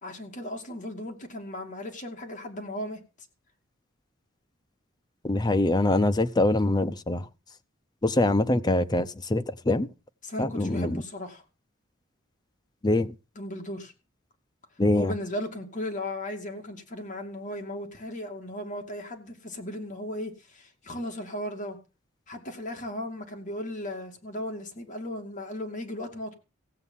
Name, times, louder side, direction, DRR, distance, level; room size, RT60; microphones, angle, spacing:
voice 1, 0.0-3.0 10.2-11.4 13.4-13.9 14.9-21.8 22.3-26.3, left 1 dB, 40° left, 2.5 m, -36 dB
voice 2, 5.2-7.2 8.0-9.9 10.4-11.0 12.8-13.1 14.8-15.1, left 2 dB, 20° left, 0.7 m, -24 dB
16.0 x 8.3 x 5.6 m
head